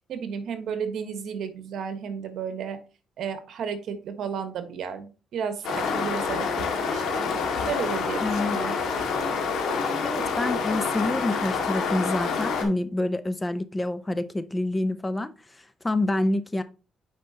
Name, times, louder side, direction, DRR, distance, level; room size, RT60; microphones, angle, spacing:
voice 1, 0.1-2.8 3.2-7.3 7.7-8.8, right 7 dB, 70° right, 1.3 m, -33 dB
sound 1, 5.6-12.6, left 5 dB, 80° left, 1.8 m, -27 dB
voice 2, 8.2-8.6 10.0-16.6, left 2 dB, 15° left, 0.6 m, -27 dB
8.7 x 5.0 x 2.8 m
cardioid pair, 90°, 0 cm